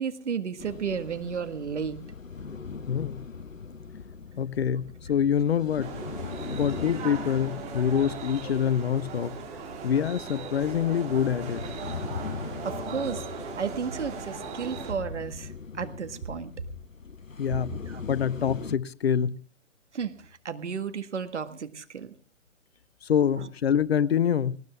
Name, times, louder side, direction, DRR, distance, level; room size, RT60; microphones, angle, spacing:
voice 1, 0.0-2.0 12.6-13.3 13.6-16.5 17.8-18.0 19.9-20.1 20.5-22.1 23.4-23.5, right 6 dB, 65° right, 1.9 m, -33 dB
sound 1, 0.6-18.8, left 5 dB, 90° left, 1.1 m, -40 dB
voice 2, 2.9-3.2 4.4-5.9 6.6-9.4 9.8-11.6 17.4-17.7 18.1-19.4 23.0-24.6, left 8 dB, 55° left, 0.8 m, -25 dB
sound 2, 5.8-14.9, right 6 dB, 15° right, 2.6 m, -39 dB
19.0 x 19.0 x 3.6 m
figure-of-eight pair, 135°, 38 cm